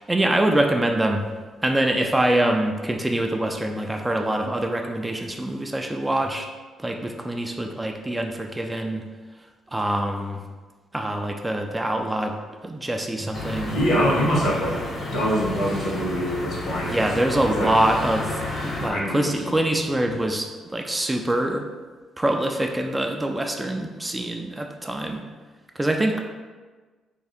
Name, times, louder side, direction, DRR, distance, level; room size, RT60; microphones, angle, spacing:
voice 1, 0.1-1.3 1.6-6.5 6.8-9.0 9.7-10.4 10.9-12.4 12.6-13.7 16.8-21.7 22.2-25.2 25.8-26.2, right 1 dB, 15° right, 3 dB, 0.3 m, -24 dB
sound 1, 13.3-18.9, left 2 dB, 50° left, 0.9 m, -31 dB
voice 2, 13.6-14.8 15.1-17.1 17.4-17.7 18.8-19.5, equal, 70° left, -3 dB, 1.2 m, -24 dB
3.6 x 2.3 x 4.2 m, 1.3 s
cardioid pair, 90°, 0 cm